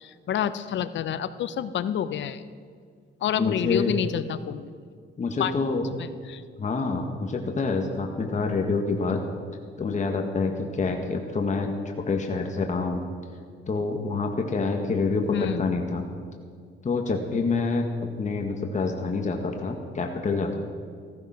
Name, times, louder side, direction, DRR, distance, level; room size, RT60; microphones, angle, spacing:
voice 1, 0.0-2.4 3.2-4.7 5.4-5.5 6.0-6.4 15.3-15.7, left 9 dB, 65° left, 14 dB, 0.8 m, -28 dB
voice 2, 3.4-4.0 5.2-5.8 6.6-9.3 9.8-13.0 13.7-16.0 16.8-20.6, left 4 dB, 35° left, 3 dB, 1.8 m, -27 dB
15.0 x 14.5 x 5.9 m, 2.1 s
cardioid pair, 90°, 20 cm